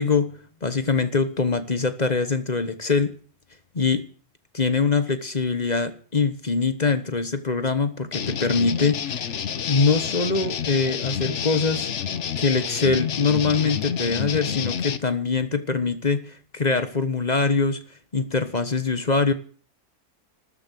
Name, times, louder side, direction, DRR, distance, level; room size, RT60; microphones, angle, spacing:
voice 1, 0.0-3.1 3.7-4.1 4.5-9.3 9.7-11.9 12.4-17.8 18.1-19.3, left 4 dB, 30° left, 11 dB, 1.2 m, -23 dB
sound 1, 8.1-15.0, left 8 dB, 55° left, 1.1 m, -29 dB
14.0 x 13.0 x 7.7 m, 0.44 s
omnidirectional pair, 1.6 m